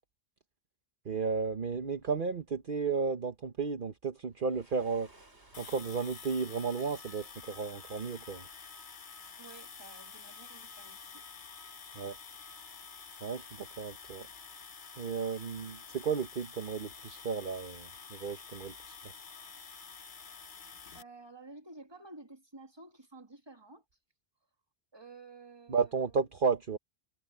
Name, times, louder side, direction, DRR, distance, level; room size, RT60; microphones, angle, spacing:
voice 1, 1.0-5.1 5.6-8.5 11.9-12.2 13.2-14.3 15.0-19.1 25.7-26.8, right 5 dB, 50° right, 1.2 m, -33 dB
Waves surf, 4.3-6.4, right 2 dB, 85° right, 4.6 m, -60 dB
sound 1, 5.5-21.0, left 5 dB, 50° left, 1.2 m, -49 dB
voice 2, 9.4-11.3 20.9-23.8 24.9-26.1, right 3 dB, 25° right, 2.4 m, -52 dB
omnidirectional pair, 1.1 m